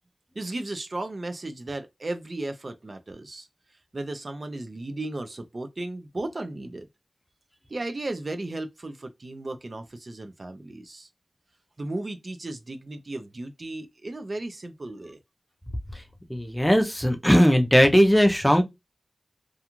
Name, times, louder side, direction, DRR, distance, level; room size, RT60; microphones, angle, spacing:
voice 1, 0.3-3.5 3.9-6.9 7.7-11.1 11.8-15.2, right 2 dB, 50° right, 0.4 m, -35 dB
voice 2, 16.3-18.6, equal, 5° left, 0.5 m, -19 dB
2.4 x 2.3 x 2.9 m
wide cardioid pair, 65°, 0 cm